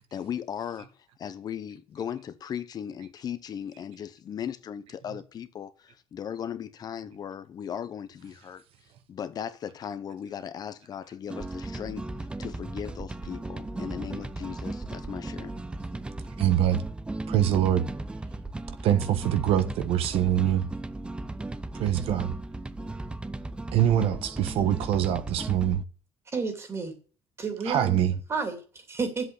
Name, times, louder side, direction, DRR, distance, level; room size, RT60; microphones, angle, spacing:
voice 1, 0.1-0.9 1.2-8.6 9.1-12.1 12.4-15.5, left 8 dB, 40° left, 0.8 m, -37 dB
sound 1, 11.3-25.8, right 2 dB, 10° right, 0.6 m, -36 dB
voice 2, 16.4-16.8 17.3-17.8 18.8-20.6 21.8-22.3 23.7-25.8 27.6-28.1, right 11 dB, 75° right, 1.2 m, -24 dB
voice 3, 26.3-27.0 27.4-28.0 28.3-29.3, right 4 dB, 25° right, 2.6 m, -31 dB
8.0 x 7.9 x 8.1 m
cardioid pair, 155°, 10 cm